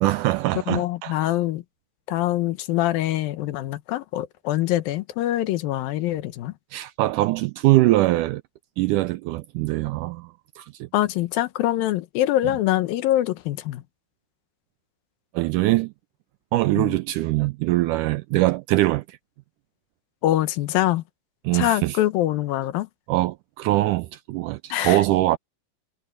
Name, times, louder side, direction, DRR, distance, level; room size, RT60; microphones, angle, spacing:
voice 1, 0.0-1.3 6.7-8.4 8.8-10.9 15.3-15.9 16.5-19.2 21.5-22.0 23.1-25.4, right 18 dB, 85° right, 1.8 m, -22 dB
voice 2, 0.7-1.6 2.1-6.5 10.9-13.8 16.8-17.0 20.2-21.0 21.5-22.9 24.7-25.0, left 14 dB, 85° left, 2.8 m, -24 dB
omnidirectional pair, 4.1 m